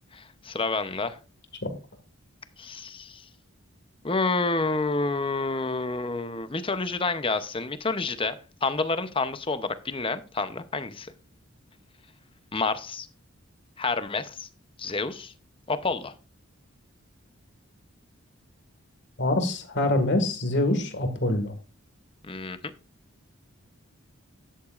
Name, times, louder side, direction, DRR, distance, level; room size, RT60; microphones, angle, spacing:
voice 1, 0.1-1.2 2.6-3.3 4.0-11.1 12.5-13.1 13.8-14.5 14.8-15.3 15.7-16.1 22.2-22.6, left 3 dB, 25° left, 0.7 m, -29 dB
voice 2, 19.2-21.5, left 1 dB, 50° left, 1.9 m, -25 dB
13.0 x 10.0 x 2.5 m
head